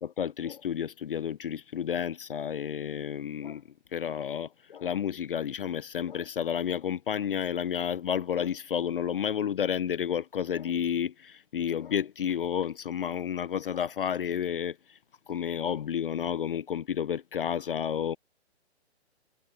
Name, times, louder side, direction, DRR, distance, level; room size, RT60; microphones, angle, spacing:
voice 1, 0.0-3.6 3.9-15.0 15.3-18.2, left 8 dB, 55° left, 0.4 m, -31 dB
hypercardioid pair, 170°, 34 cm